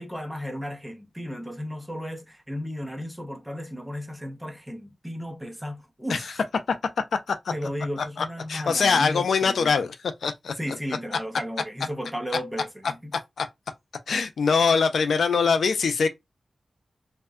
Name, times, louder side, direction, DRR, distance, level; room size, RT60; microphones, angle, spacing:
voice 1, 0.0-6.3 7.5-9.8 10.6-13.1, equal, 5° right, 0.5 m, -34 dB
voice 2, 8.2-10.0 10.2-10.5 13.4-13.5 14.1-16.1, left 5 dB, 90° left, 0.4 m, -23 dB
2.6 x 2.1 x 2.3 m
wide cardioid pair, 105°, 0 cm